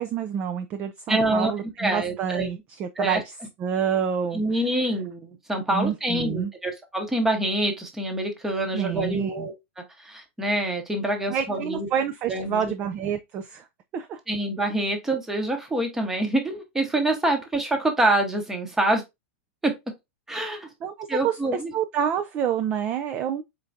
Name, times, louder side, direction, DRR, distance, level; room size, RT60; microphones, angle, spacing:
voice 1, 0.0-3.3 3.6-4.4 5.7-6.5 8.7-9.5 11.3-13.7 13.9-14.2 20.8-21.4 21.7-23.4, right 8 dB, 20° right, 0.3 m, -28 dB
voice 2, 1.1-1.5 1.8-2.5 3.0-3.2 4.3-9.5 10.0-11.9 12.3-12.7 14.3-19.0 19.6-19.8 20.3-20.7 21.1-21.7, right 1 dB, 5° right, 0.9 m, -26 dB
4.4 x 3.7 x 2.5 m
supercardioid pair, 170°, 7 cm